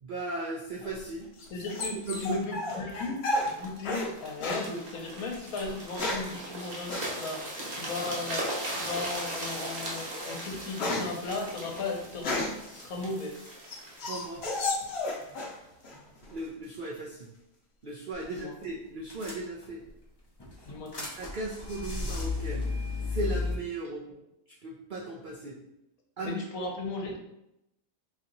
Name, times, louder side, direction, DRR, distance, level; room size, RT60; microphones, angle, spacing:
voice 1, 0.0-1.3 2.1-2.4 14.0-14.4 16.2-17.3 17.8-19.8 21.2-22.7 23.1-24.0 24.6-25.6 26.2-26.4, right 2 dB, 80° right, -2 dB, 0.4 m, -36 dB
sound 1, 0.8-4.1 4.4-4.7 5.6-6.4 6.9-7.1 8.6-9.0 9.5-9.7 10.1-12.7 13.2-15.6 15.8-16.5, left 2 dB, 55° left, 0.8 m, -33 dB
voice 2, 1.5-8.4 8.7-13.3 18.3-18.5 20.6-21.1 26.2-27.2, left 3 dB, 75° left, 1 dB, 1.2 m, -36 dB
sound 2, 3.5-15.3 15.9-16.1, right 1 dB, 35° right, 0.8 m, -38 dB
sound 3, 18.1-18.4 18.6-18.7 19.1-19.9 20.4-23.5, left 3 dB, 35° left, 0.4 m, -34 dB
3.1 x 2.8 x 3.8 m, 0.85 s
omnidirectional pair, 1.5 m